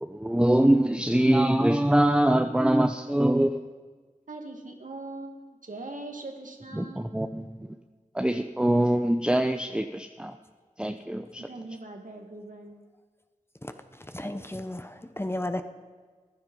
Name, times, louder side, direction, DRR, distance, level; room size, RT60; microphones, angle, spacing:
voice 1, 0.0-3.6 6.7-7.5 8.1-10.4 10.8-11.5, right 1 dB, 5° right, 7 dB, 0.7 m, -23 dB
voice 2, 4.3-7.1 11.5-12.8, right 2 dB, 75° right, 3 dB, 2.1 m, -41 dB
voice 3, 14.1-15.6, left 1 dB, 15° left, 8 dB, 1.0 m, -33 dB
15.0 x 10.5 x 5.4 m, 1.4 s
wide cardioid pair, 40°, 14 cm